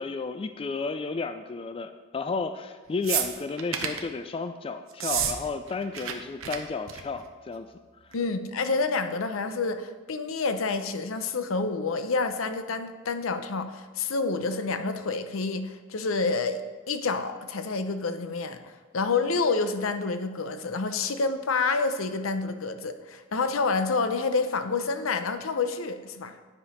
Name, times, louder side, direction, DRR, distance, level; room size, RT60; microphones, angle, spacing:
voice 1, 0.0-7.7, left 4 dB, 25° left, 9 dB, 0.3 m, -32 dB
sound 1, 3.0-4.1 4.9-5.4 5.6-6.1 6.4-6.6 6.9-7.2 8.1-8.2, right 9 dB, 75° right, 0.8 m, -29 dB
voice 2, 8.1-16.6 16.9-18.6 18.9-26.4, left 4 dB, 75° left, 9 dB, 0.7 m, -28 dB
9.6 x 5.0 x 5.7 m, 1.4 s
head